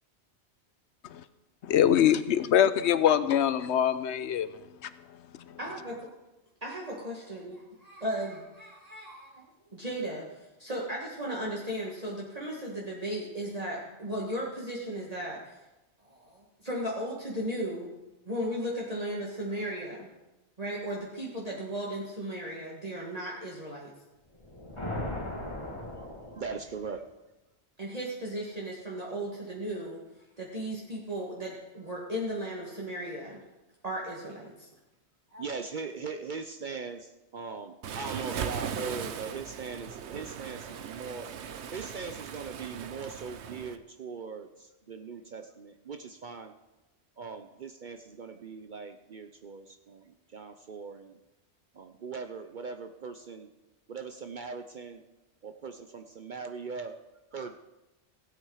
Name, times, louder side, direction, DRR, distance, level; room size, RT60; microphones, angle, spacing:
voice 1, 1.6-4.5 4.8-4.9, left 10 dB, 80° left, 14 dB, 0.9 m, -23 dB
voice 2, 5.6-6.1 6.6-9.4 9.7-15.6 16.0-17.9 18.3-20.1 20.6-23.9 27.8-30.0 30.4-33.4 33.8-34.7 35.3-35.4, right 1 dB, 35° right, -4 dB, 1.8 m, -36 dB
sound 1, 24.3-26.9, left 1 dB, 25° left, 2.1 m, -38 dB
voice 3, 26.0-27.1 35.4-41.3 41.7-46.5 47.2-51.2 51.7-53.5 53.9-55.0 55.4-57.0 57.3-57.5, right 5 dB, 50° right, 7 dB, 0.7 m, -40 dB
Waves surf, 37.8-43.8, right 8 dB, 75° right, 1.0 m, -38 dB
15.5 x 8.7 x 4.8 m, 1.0 s
omnidirectional pair, 1.2 m